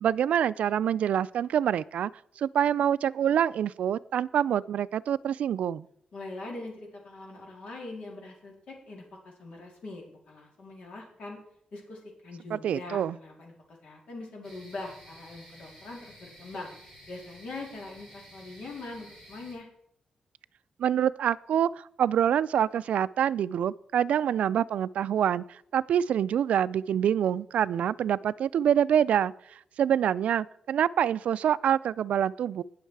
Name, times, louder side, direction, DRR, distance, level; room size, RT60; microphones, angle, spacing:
voice 1, 0.0-2.1 2.4-5.9 12.5-13.2 20.8-29.3 29.8-32.6, right 9 dB, 80° right, 17 dB, 0.4 m, -26 dB
voice 2, 6.1-11.4 11.7-16.7 17.1-19.7, left 2 dB, 65° left, -1 dB, 3.8 m, -42 dB
sound 1, 14.4-19.5, right 1 dB, 15° left, 5.2 m, -52 dB
19.5 x 6.5 x 4.7 m, 0.71 s
wide cardioid pair, 175°, 2 cm